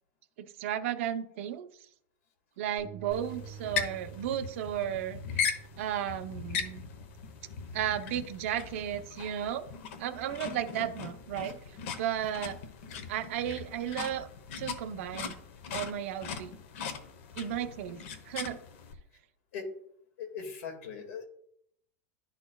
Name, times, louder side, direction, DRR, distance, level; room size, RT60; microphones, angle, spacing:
voice 1, 0.4-1.7 2.6-5.2 5.8-6.8 7.7-9.7 10.0-11.6 12.0-12.6 13.1-14.3 14.6-15.4 15.7-16.5 17.4-18.0 18.3-18.6, right 10 dB, 55° right, 9 dB, 0.6 m, -34 dB
sound 1, 2.8-9.0, right 8 dB, ahead, 2.5 m, -50 dB
sound 2, 3.1-18.9, left 6 dB, 55° left, 0.9 m, -39 dB
voice 2, 20.2-21.2, left 6 dB, 75° left, 3 dB, 1.9 m, -39 dB
12.0 x 4.2 x 2.3 m, 0.70 s
supercardioid pair, 170°, 8 cm